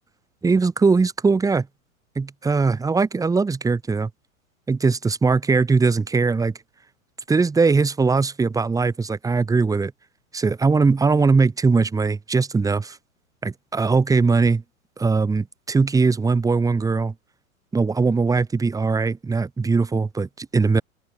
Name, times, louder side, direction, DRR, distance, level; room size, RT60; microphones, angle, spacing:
voice 1, 0.4-1.7 2.1-4.1 4.7-6.5 7.3-9.9 10.3-13.0 13.4-14.6 15.0-17.1 17.7-20.8, right 4 dB, 10° right, 1.3 m, -20 dB
open air
figure-of-eight pair, 105°, 42 cm